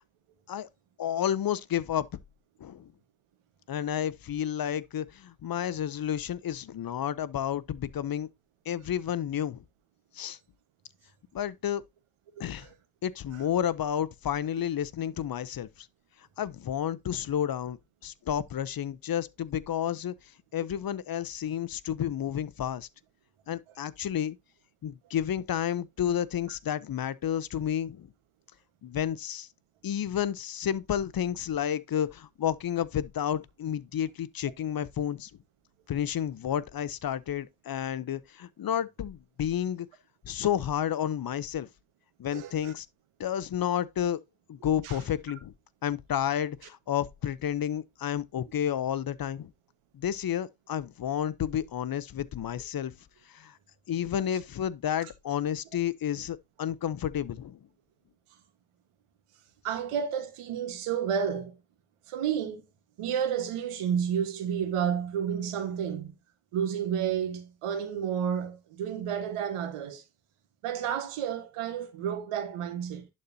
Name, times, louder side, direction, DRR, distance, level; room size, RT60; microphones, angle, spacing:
voice 1, 1.0-2.1 2.6-2.9 3.7-8.3 8.7-9.6 10.1-10.4 11.3-11.8 12.4-12.7 13.0-15.9 16.4-20.1 20.5-22.9 23.5-24.4 24.8-28.1 28.8-29.5 29.8-35.3 35.9-39.9 40.2-41.7 42.2-42.9 43.2-44.2 44.5-45.5 45.8-49.5 49.9-52.9 53.3-53.6 53.9-57.6, left 10 dB, 45° left, 0.6 m, -31 dB
voice 2, 12.4-12.7 42.3-42.7 44.8-45.0 59.6-61.6 62.1-62.6 63.0-66.1 66.5-70.0 70.6-73.1, right 8 dB, 85° right, 1.4 m, -31 dB
11.0 x 4.3 x 2.7 m
supercardioid pair, 60°, 50 cm